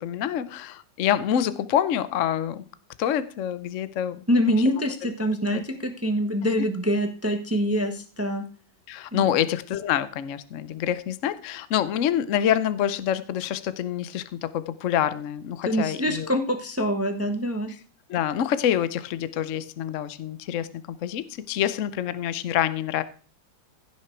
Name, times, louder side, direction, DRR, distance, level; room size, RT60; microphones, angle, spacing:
voice 1, 0.0-2.6 3.0-4.2 5.4-5.6 8.9-16.3 18.1-20.7 21.0-23.0, left 10 dB, 60° left, 0.8 m, -26 dB
voice 2, 4.3-8.4 9.1-9.3 15.7-17.7, equal, 10° right, 0.9 m, -25 dB
16.0 x 6.3 x 4.6 m
omnidirectional pair, 2.1 m